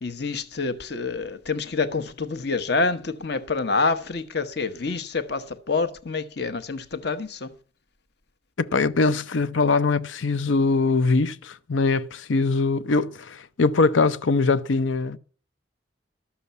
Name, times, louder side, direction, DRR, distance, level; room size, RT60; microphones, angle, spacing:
voice 1, 0.0-7.5, left 4 dB, 55° left, 1.0 m, -27 dB
voice 2, 8.6-15.2, left 3 dB, 80° left, 0.7 m, -22 dB
12.5 x 6.9 x 8.0 m
head